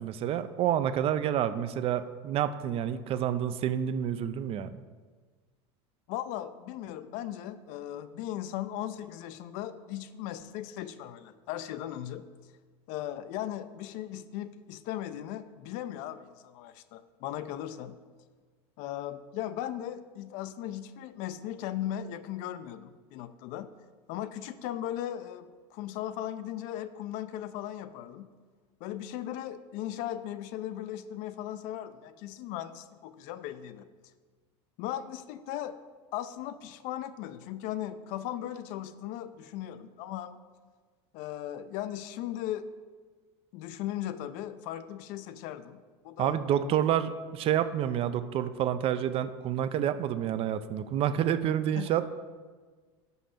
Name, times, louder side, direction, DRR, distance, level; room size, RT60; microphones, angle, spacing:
voice 1, 0.0-4.8 46.2-52.1, right 10 dB, 40° right, 12 dB, 0.4 m, -28 dB
voice 2, 6.1-12.3 12.9-18.0 18.8-23.7 24.1-28.3 28.8-33.9 34.8-35.8 36.1-40.4 41.1-42.7 43.5-46.4 51.8-51.9, left 12 dB, 60° left, 13 dB, 0.4 m, -37 dB
5.4 x 5.0 x 5.7 m, 1.5 s
supercardioid pair, 110°, 15 cm